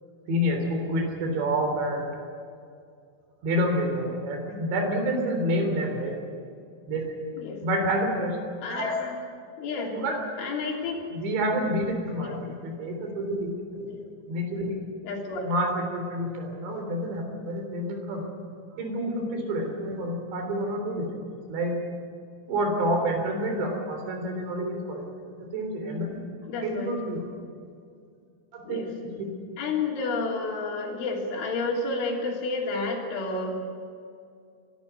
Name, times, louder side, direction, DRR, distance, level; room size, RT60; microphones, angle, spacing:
voice 1, 0.3-2.1 3.4-6.1 6.9-7.0 7.6-8.4 8.8-9.0 9.9-10.2 11.1-13.9 14.3-14.7 15.4-18.2 18.8-21.1 21.5-21.8 22.5-25.1 25.5-26.2 26.6-27.2 28.5-29.3, equal, 70° right, 3 dB, 5.8 m, -28 dB
voice 2, 8.6-9.1 9.6-9.9 10.4-10.9 12.2-12.4 13.8-14.0 15.0-15.5 26.5-26.9 28.7-28.9 29.6-33.6, left 3 dB, 90° left, -1 dB, 5.7 m, -30 dB
23.0 x 13.0 x 9.5 m, 2.3 s
omnidirectional pair, 5.3 m